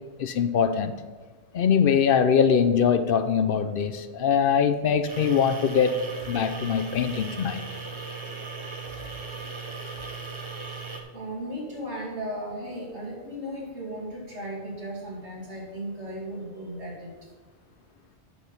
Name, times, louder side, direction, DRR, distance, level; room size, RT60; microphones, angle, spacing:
voice 1, 0.2-1.0 1.5-6.0 6.3-7.6, left 7 dB, 60° left, 9 dB, 0.7 m, -22 dB
sound 1, 5.1-11.0, right 4 dB, 30° right, 0.9 m, -37 dB
voice 2, 10.7-17.1, right 1 dB, 90° right, -3 dB, 2.8 m, -36 dB
8.7 x 6.5 x 5.7 m, 1.4 s
omnidirectional pair, 1.1 m